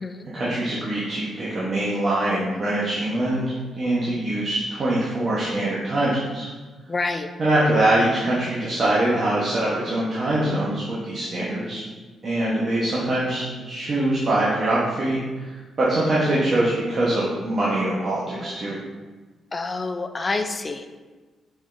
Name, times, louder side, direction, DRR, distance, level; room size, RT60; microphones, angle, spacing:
voice 1, 0.3-3.5 3.8-6.5 7.4-11.8 12.2-18.8, right 1 dB, 45° right, -8 dB, 1.0 m, -23 dB
voice 2, 6.9-7.3 19.5-20.9, left 3 dB, 35° left, 7 dB, 0.4 m, -27 dB
5.0 x 3.6 x 2.6 m, 1.3 s
supercardioid pair, 60°, 0 cm